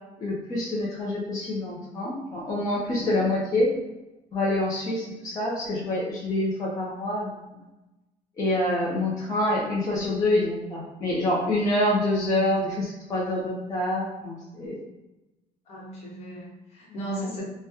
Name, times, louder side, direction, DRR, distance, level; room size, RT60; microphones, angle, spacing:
voice 1, 0.2-3.7 4.3-7.4 8.4-14.8 16.9-17.3, left 1 dB, 20° left, -6 dB, 0.5 m, -26 dB
voice 2, 15.7-17.4, right 2 dB, 45° left, -3 dB, 0.9 m, -36 dB
2.8 x 2.1 x 3.4 m, 1.0 s
cardioid pair, 165°, 16 cm